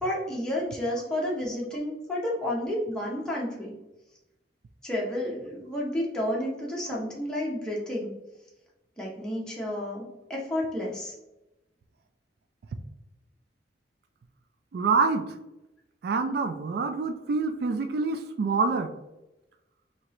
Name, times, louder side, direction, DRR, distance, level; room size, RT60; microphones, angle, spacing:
voice 1, 0.0-3.8 4.8-8.1 9.0-11.1, left 1 dB, 5° left, -5 dB, 0.7 m, -31 dB
voice 2, 14.7-15.3 16.0-18.9, right 4 dB, 60° right, 8 dB, 0.3 m, -26 dB
4.4 x 2.8 x 3.0 m, 0.96 s
head